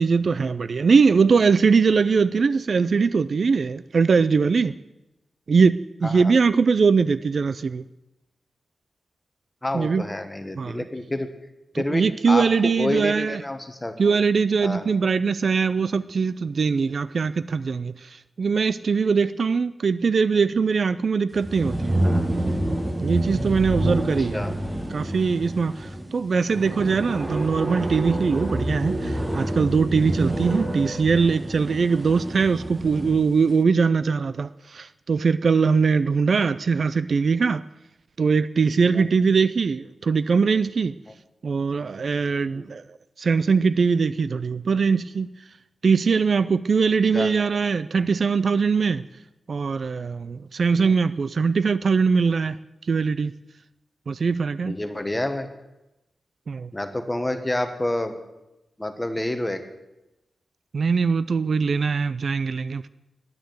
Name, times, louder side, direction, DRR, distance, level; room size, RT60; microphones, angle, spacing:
voice 1, 0.0-4.8 5.5-7.8 9.7-10.1 10.6-10.8 11.7-13.4 14.0-22.0 23.0-24.4 24.9-37.6 38.2-41.0 41.4-45.3 45.8-49.0 49.5-52.6 52.9-53.3 54.1-54.8 56.5-56.7 60.7-62.9, right 5 dB, 55° right, 0.4 m, -21 dB
voice 2, 9.6-11.3 11.8-14.3 14.6-14.8 24.3-24.6 38.9-39.1 42.5-42.7 47.1-47.3 50.8-50.9 54.6-55.5 56.7-58.1 58.8-59.6, left 1 dB, 15° left, 1.2 m, -28 dB
sound 1, 21.3-33.3, right 1 dB, 15° right, 1.3 m, -28 dB
10.5 x 9.6 x 7.8 m
wide cardioid pair, 140°, 0 cm